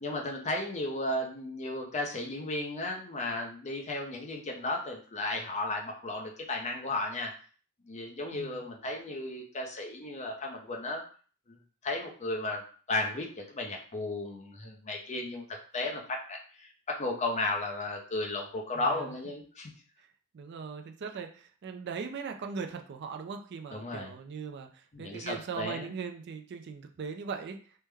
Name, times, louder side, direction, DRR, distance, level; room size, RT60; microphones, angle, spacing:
voice 1, 0.0-7.3 7.9-11.0 11.5-11.6 11.8-15.5 15.7-19.7 23.7-24.1 24.9-25.9, left 2 dB, 30° left, 0 dB, 0.6 m, -34 dB
voice 2, 18.7-19.1 20.3-27.6, right 5 dB, 50° right, 5 dB, 0.3 m, -39 dB
3.2 x 2.1 x 3.3 m, 0.41 s
head